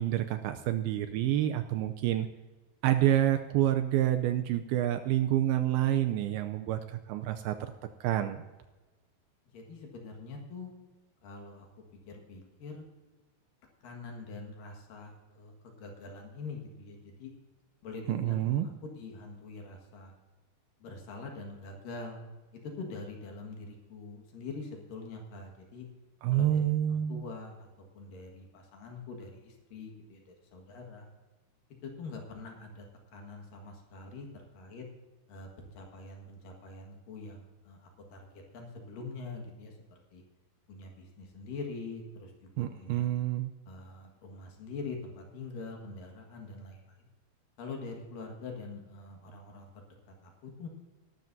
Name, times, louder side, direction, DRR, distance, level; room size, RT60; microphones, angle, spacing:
voice 1, 0.0-2.3 2.8-7.6 8.0-8.4 18.1-18.7 26.2-27.2 42.6-43.5, right 12 dB, 80° right, 8 dB, 2.3 m, -28 dB
voice 2, 9.5-10.8 11.2-11.7 12.1-12.8 13.8-17.3 17.8-20.1 20.8-22.2 22.5-25.9 26.3-27.7 27.9-31.1 31.8-32.9 33.1-34.8 35.3-35.5 35.7-40.2 40.7-43.1 43.7-47.1 47.6-50.7, left 3 dB, 60° left, 2 dB, 3.1 m, -44 dB
19.5 x 12.0 x 2.7 m, 1.2 s
omnidirectional pair, 4.7 m